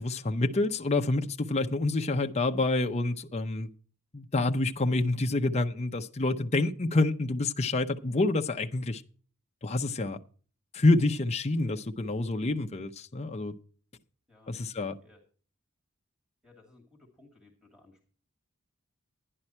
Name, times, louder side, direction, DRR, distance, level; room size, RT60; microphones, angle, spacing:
voice 1, 0.0-3.7 4.1-9.0 9.6-10.2 10.7-13.5 14.5-15.0, left 2 dB, 30° left, 0.7 m, -27 dB
voice 2, 16.4-18.1, left 2 dB, 5° right, 2.3 m, -59 dB
11.0 x 10.5 x 4.3 m
head